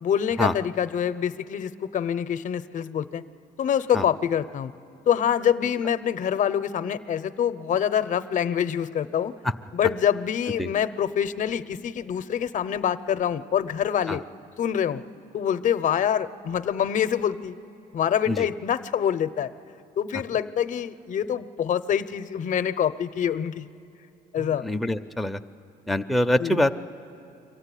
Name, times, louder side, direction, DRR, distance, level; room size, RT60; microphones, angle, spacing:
voice 1, 0.0-3.2 3.6-4.7 5.1-9.3 9.7-14.2 14.6-15.0 15.3-17.6 17.9-19.5 20.0-23.7 24.3-24.7 26.4-26.6, left 9 dB, 50° left, 12 dB, 0.7 m, -25 dB
voice 2, 24.4-25.4 25.9-26.7, left 1 dB, ahead, 5 dB, 0.5 m, -24 dB
24.0 x 15.0 x 9.9 m, 2.8 s
cardioid pair, 110°, 17 cm